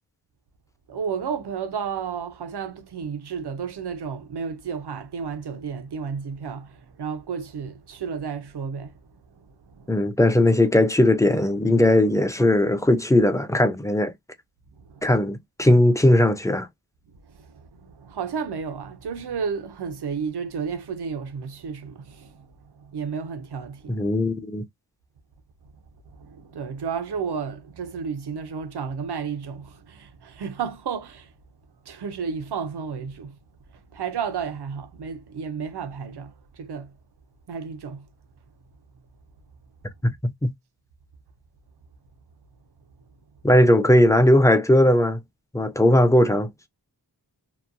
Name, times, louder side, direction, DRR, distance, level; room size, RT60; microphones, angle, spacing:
voice 1, 0.9-8.9 9.4-9.5 9.7-10.1 14.8-15.1 17.1-24.0 26.1-31.3 31.9-33.4 33.9-37.0 37.5-38.1, right 6 dB, 80° right, 0.6 m, -32 dB
voice 2, 9.9-14.1 15.0-16.7 23.9-24.6 40.0-40.5 43.4-45.2 45.5-46.5, left 1 dB, 10° left, 0.5 m, -18 dB
2.9 x 2.2 x 2.5 m
wide cardioid pair, 75°, 39 cm